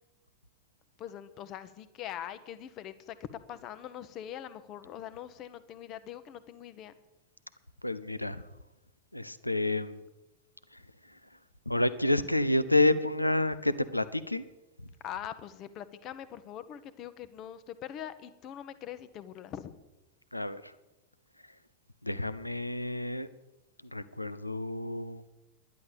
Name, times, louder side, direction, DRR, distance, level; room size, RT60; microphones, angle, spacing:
voice 1, 1.0-3.2 3.5-6.9 15.0-19.7, left 10 dB, 35° left, 13 dB, 1.0 m, -43 dB
voice 2, 7.8-8.4 9.1-10.0 10.7-10.8 11.7-14.4 20.3-20.7 22.0-23.3 23.9-25.2, left 2 dB, 85° left, 14 dB, 0.5 m, -29 dB
11.0 x 10.5 x 6.8 m, 1.0 s
figure-of-eight pair, 90°, 0 cm